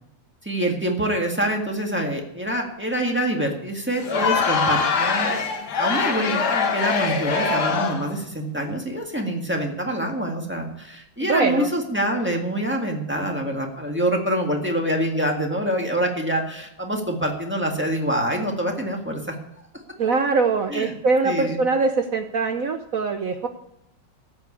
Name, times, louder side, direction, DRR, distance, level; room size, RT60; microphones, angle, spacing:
voice 1, 0.4-5.3 5.8-19.3 20.7-20.9 21.2-21.6, right 1 dB, 5° right, 1 dB, 1.5 m, -25 dB
Crowd, 4.0-8.2, left 5 dB, 55° left, 1.6 m, -23 dB
voice 2, 11.2-11.7 20.0-23.5, right 4 dB, 60° right, 6 dB, 0.9 m, -22 dB
14.0 x 5.9 x 8.5 m, 0.80 s
omnidirectional pair, 2.3 m